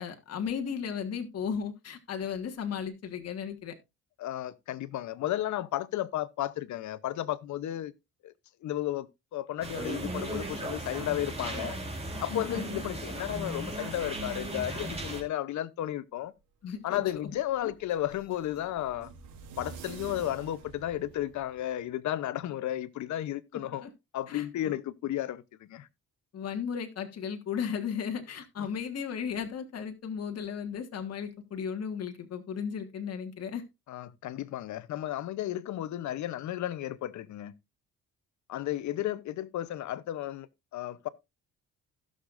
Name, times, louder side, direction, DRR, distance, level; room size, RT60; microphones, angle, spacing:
voice 1, 0.0-3.7 12.3-12.7 16.6-17.0 23.8-23.9 24.3-24.5 26.3-33.6, left 7 dB, 55° left, 1.6 m, -35 dB
voice 2, 4.2-7.9 8.2-8.3 8.6-9.1 9.3-11.8 12.2-16.3 16.8-19.1 19.6-23.8 24.1-25.9 28.6-28.7 33.9-37.5 38.5-40.5 40.7-41.1, left 13 dB, 70° left, 0.8 m, -33 dB
sound 1, 9.6-15.2, right 1 dB, 20° right, 3.5 m, -36 dB
sound 2, 16.6-21.7, right 6 dB, 85° right, 3.1 m, -49 dB
16.5 x 6.6 x 2.5 m
cardioid pair, 90°, 30 cm